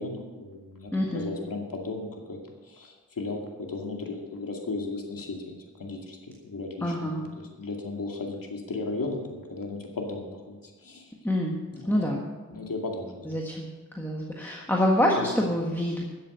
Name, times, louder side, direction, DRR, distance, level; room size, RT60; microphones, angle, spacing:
voice 1, 0.0-2.4 2.6-6.2 6.4-11.1 11.7-12.0 12.5-13.4 15.2-15.3, left 3 dB, 80° left, 1 dB, 2.3 m, -35 dB
voice 2, 0.9-1.3 6.8-7.3 11.2-11.6 11.8-12.2 13.2-13.7 13.9-16.1, left 1 dB, 5° left, -2 dB, 1.6 m, -26 dB
13.0 x 7.7 x 6.5 m, 1.3 s
wide cardioid pair, 80°, 33 cm